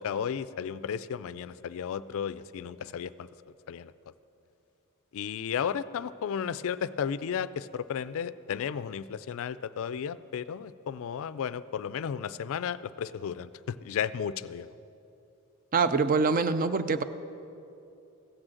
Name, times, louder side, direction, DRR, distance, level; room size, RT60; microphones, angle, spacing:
voice 1, 0.0-3.3 3.7-3.9 5.1-14.7, left 7 dB, 65° left, 16 dB, 0.3 m, -34 dB
voice 2, 15.7-17.0, right 4 dB, 40° right, 12 dB, 0.4 m, -24 dB
15.5 x 6.3 x 7.6 m, 2.7 s
head